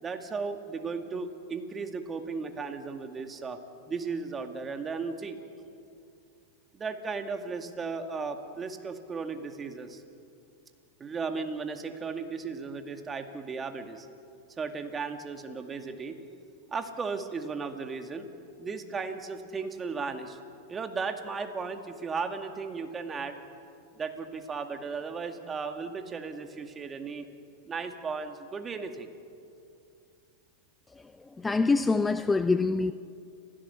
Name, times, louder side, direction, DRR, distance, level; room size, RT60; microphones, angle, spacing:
voice 1, 0.0-3.6 3.9-5.4 6.7-10.0 11.0-14.1 14.6-16.2 16.7-18.3 18.6-20.4 20.7-23.4 23.9-27.3 27.7-29.1, right 4 dB, 20° right, 2.2 m, -35 dB
voice 2, 30.9-32.9, left 3 dB, 15° left, 0.6 m, -26 dB
30.0 x 16.0 x 7.2 m
hypercardioid pair, 105°, 0 cm